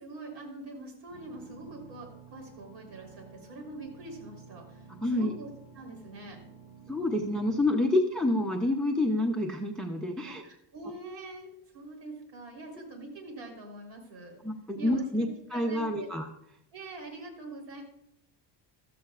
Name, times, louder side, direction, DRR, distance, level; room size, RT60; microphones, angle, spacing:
voice 1, 0.0-5.5 5.7-6.4 7.9-8.0 10.2-14.4 14.8-15.3 15.5-16.1 16.7-17.8, right 2 dB, 55° right, 1 dB, 3.5 m, -44 dB
sound 1, 1.1-7.6, right 5 dB, 75° right, 3.7 m, -52 dB
voice 2, 5.0-5.3 6.9-10.4 14.4-16.2, left 1 dB, ahead, 4 dB, 0.3 m, -28 dB
14.5 x 13.5 x 2.4 m, 0.77 s
cardioid pair, 170°, 49 cm